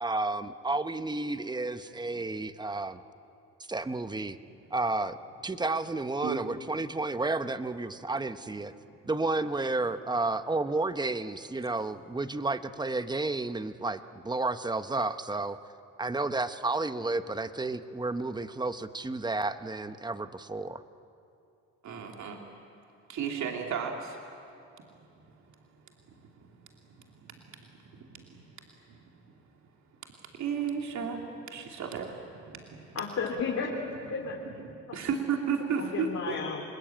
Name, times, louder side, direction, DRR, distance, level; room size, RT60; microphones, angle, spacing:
voice 1, 0.0-3.0 3.7-4.4 4.7-5.2 5.4-8.7 9.1-15.6 16.0-20.8, right 2 dB, 15° right, 11 dB, 1.0 m, -31 dB
voice 2, 21.8-22.4 23.1-24.2 25.2-25.3 26.2-26.5 26.9-28.4 28.9-29.0 30.3-33.0 34.2-36.4, right 6 dB, 70° right, 1 dB, 2.6 m, -35 dB
voice 3, 33.0-34.3 35.8-36.6, left 5 dB, 55° left, -2 dB, 3.5 m, -33 dB
29.0 x 20.5 x 9.0 m, 2.7 s
cardioid pair, 90°, 30 cm